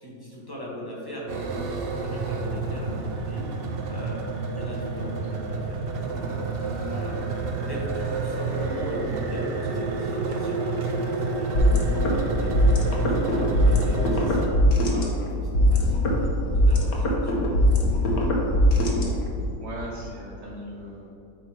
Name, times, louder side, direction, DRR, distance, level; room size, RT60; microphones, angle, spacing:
voice 1, 0.0-3.4 3.9-6.4 6.9-7.2 7.7-11.6 12.1-17.7, equal, 15° left, -5 dB, 1.0 m, -40 dB
sound 1, 1.3-14.5, right 3 dB, 75° right, 0.5 m, -29 dB
sound 2, 11.6-19.5, equal, 75° left, 1.6 m, -21 dB
voice 2, 19.6-21.1, equal, 60° right, -5 dB, 1.2 m, -38 dB
8.9 x 3.0 x 4.8 m, 2.6 s
omnidirectional pair, 1.8 m